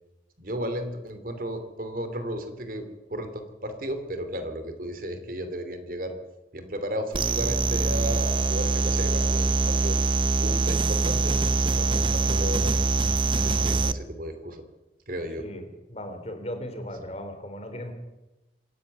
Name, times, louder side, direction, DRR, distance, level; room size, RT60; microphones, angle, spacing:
voice 1, 0.4-6.1 6.5-10.0 10.4-12.8 13.3-14.6 15.1-15.4, equal, 50° right, 9 dB, 2.9 m, -34 dB
sound 1, 7.1-13.9, right 3 dB, 30° right, 0.7 m, -24 dB
voice 2, 15.4-17.9, equal, 35° left, 7 dB, 3.2 m, -37 dB
26.0 x 11.0 x 9.4 m, 1.0 s
head